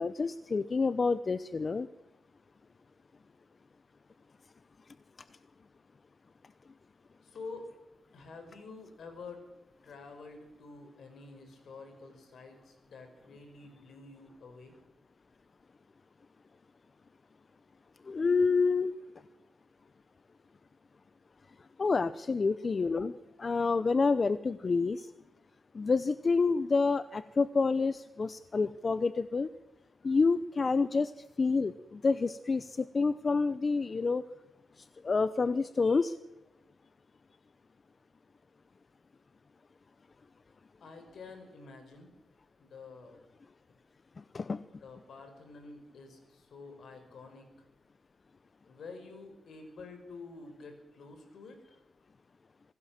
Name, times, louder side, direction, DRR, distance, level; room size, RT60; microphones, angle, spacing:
voice 1, 0.0-1.9 18.1-18.9 21.8-23.1 23.4-25.1 25.7-29.5 30.0-31.1 31.4-34.2 35.0-36.2 44.2-44.6, left 4 dB, 40° left, 14 dB, 0.8 m, -28 dB
voice 2, 7.2-7.7 8.1-9.4 9.8-14.7 40.8-42.1 42.6-43.2 44.8-47.5 48.7-51.6, left 3 dB, 70° left, 7 dB, 5.6 m, -48 dB
25.5 x 16.5 x 7.5 m, 0.97 s
cardioid pair, 85°, 0 cm